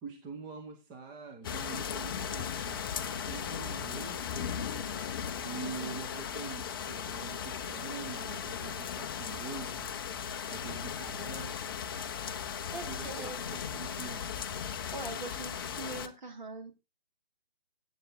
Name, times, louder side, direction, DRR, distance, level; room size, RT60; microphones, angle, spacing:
voice 1, 0.0-2.8 3.2-5.0 5.4-9.9 10.5-11.6 12.9-14.3, right 5 dB, 15° right, 3 dB, 1.2 m, -45 dB
sound 1, 1.4-16.1, left 8 dB, 25° left, 0.7 m, -37 dB
voice 2, 5.6-6.0 12.7-13.4 14.9-16.8, right 3 dB, 50° right, 5 dB, 3.0 m, -42 dB
13.5 x 8.3 x 3.7 m, 0.26 s
figure-of-eight pair, 140°, 29 cm